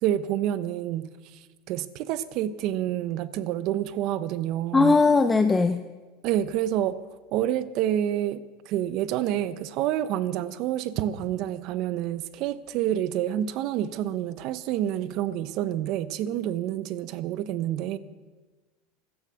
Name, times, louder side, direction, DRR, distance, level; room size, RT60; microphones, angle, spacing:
voice 1, 0.0-1.4 1.7-5.0 6.2-7.0 7.3-18.0, right 11 dB, 55° right, 15 dB, 0.9 m, -28 dB
voice 2, 4.7-5.8, left 3 dB, 15° left, 8 dB, 0.6 m, -19 dB
16.0 x 12.0 x 6.4 m, 1.3 s
supercardioid pair, 120°, 0 cm